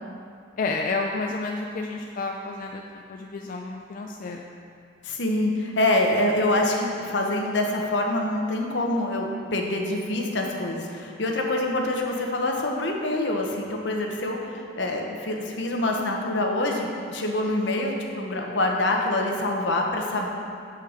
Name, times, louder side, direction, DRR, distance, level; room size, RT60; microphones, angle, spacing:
voice 1, 0.6-2.8 3.1-4.5, left 3 dB, 50° left, 2 dB, 0.4 m, -30 dB
voice 2, 5.0-20.3, left 1 dB, 75° left, 1 dB, 0.9 m, -25 dB
6.4 x 5.6 x 4.9 m, 2.4 s
head